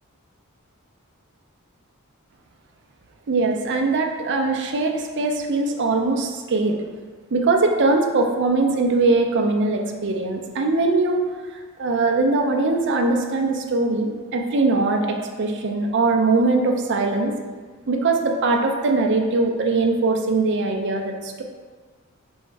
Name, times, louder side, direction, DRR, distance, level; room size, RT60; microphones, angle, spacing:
voice 1, 3.3-6.8 7.3-11.3 11.8-17.3 17.9-21.4, right 3 dB, 55° right, 3 dB, 0.5 m, -21 dB
3.5 x 3.1 x 4.6 m, 1.5 s
head